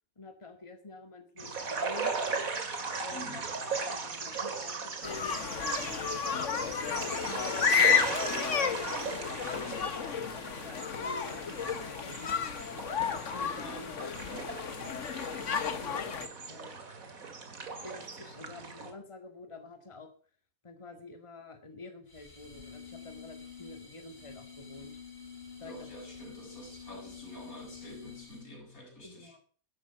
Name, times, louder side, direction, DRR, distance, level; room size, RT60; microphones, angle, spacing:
voice 1, 0.2-2.2 3.0-3.5 3.7-8.0 8.6-12.4 13.3-13.9 15.7-16.9 17.8-20.1 20.6-24.9 25.6-25.9 29.0-29.4, left 3 dB, 20° left, 1.9 m, -48 dB
sound 1, 1.4-18.9, right 4 dB, 75° right, 2.6 m, -38 dB
voice 2, 3.1-3.5 13.6-15.1 25.6-29.4, equal, 85° left, 7.2 m, -48 dB
sound 2, 5.0-16.3, left 6 dB, 60° left, 1.5 m, -32 dB
sound 3, 22.1-28.6, left 6 dB, 45° left, 3.8 m, -48 dB
13.0 x 12.5 x 5.8 m
omnidirectional pair, 1.5 m